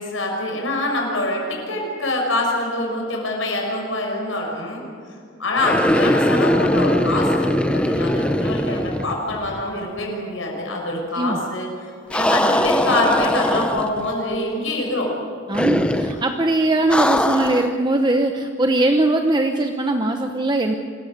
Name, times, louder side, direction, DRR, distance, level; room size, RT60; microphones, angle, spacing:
voice 1, 0.0-4.8 5.4-11.7 12.1-15.1, left 2 dB, 80° left, 0 dB, 6.2 m, -25 dB
sound 1, 5.6-9.7 10.0-10.1 12.1-14.1 15.5-16.2 16.9-17.8, left 1 dB, 5° left, 0.8 m, -21 dB
voice 2, 15.5-20.7, right 2 dB, 20° right, 5 dB, 0.9 m, -20 dB
25.5 x 15.0 x 9.5 m, 2.3 s
head